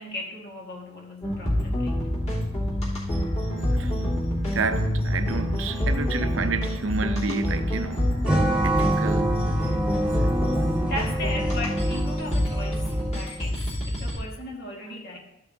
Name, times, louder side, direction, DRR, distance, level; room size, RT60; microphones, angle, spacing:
voice 1, 0.0-2.0 5.7-5.8 9.6-9.8 10.8-15.2, left 1 dB, 55° left, 1.9 m, -37 dB
sound 1, 1.2-14.2, left 1 dB, 35° left, 3.5 m, -27 dB
voice 2, 4.5-8.2 8.6-9.8 10.3-10.5, right 4 dB, 70° right, 0.6 m, -30 dB
sound 2, 8.2-13.4, right 1 dB, 5° right, 1.3 m, -27 dB
14.0 x 6.6 x 2.8 m
head